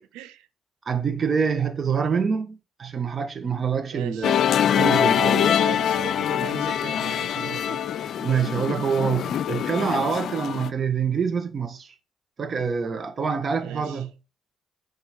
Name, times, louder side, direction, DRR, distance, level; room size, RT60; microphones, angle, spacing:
voice 1, 0.1-0.5 3.9-4.4 4.9-7.8 13.6-14.1, right 11 dB, 90° right, 0.7 m, -38 dB
voice 2, 0.8-5.4 8.2-11.9 12.4-14.1, right 6 dB, 45° right, 1.3 m, -26 dB
Musical instrument, 4.2-10.7, left 9 dB, 65° left, 0.4 m, -24 dB
7.2 x 4.2 x 5.9 m
supercardioid pair, 65°, 0 cm